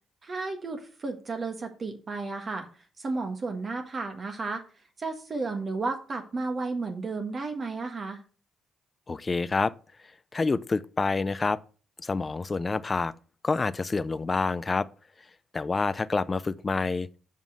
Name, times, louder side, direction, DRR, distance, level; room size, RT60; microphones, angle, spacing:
voice 1, 0.2-2.7 3.0-4.6 5.0-8.2, right 3 dB, 40° right, 1.4 m, -33 dB
voice 2, 9.1-9.7 10.3-11.6 12.0-13.1 13.4-14.9 15.5-17.1, left 4 dB, 30° left, 0.5 m, -27 dB
7.5 x 5.3 x 6.2 m
cardioid pair, 90°, 0 cm